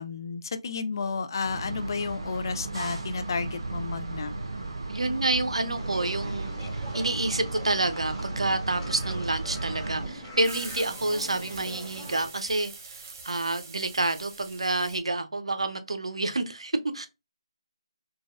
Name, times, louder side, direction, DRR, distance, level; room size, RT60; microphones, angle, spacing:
voice 1, 0.0-4.3, left 4 dB, 45° left, 0.4 m, -32 dB
sound 1, 1.4-10.1, right 2 dB, 65° right, 1.0 m, -35 dB
voice 2, 4.9-6.5 6.9-12.7 13.2-17.1, right 2 dB, 85° right, 0.6 m, -28 dB
sound 2, 5.7-12.3, equal, 10° right, 1.3 m, -42 dB
sound 3, 9.4-15.0, right 4 dB, 25° right, 0.7 m, -45 dB
3.9 x 2.3 x 2.4 m
figure-of-eight pair, 160°, 3 cm